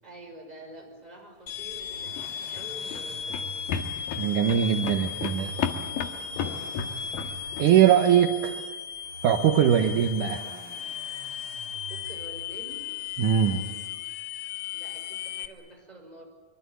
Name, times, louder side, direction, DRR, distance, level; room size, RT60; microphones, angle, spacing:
voice 1, 0.0-3.6 6.3-6.7 11.9-12.8 14.7-16.2, right 1 dB, 10° right, 1 dB, 5.6 m, -47 dB
sound 1, 1.5-15.5, left 8 dB, 60° left, 2.4 m, -36 dB
Accelerating revving vroom, 1.6-13.5 14.8-14.9, right 5 dB, 40° right, 2.9 m, -47 dB
sound 2, 2.0-7.7, left 6 dB, 80° left, 3.3 m, -34 dB
voice 2, 4.2-5.6 7.6-8.6 9.2-10.4 13.2-13.6, right 9 dB, 70° right, 5 dB, 2.6 m, -21 dB
24.5 x 24.0 x 8.6 m, 1.3 s
omnidirectional pair, 4.0 m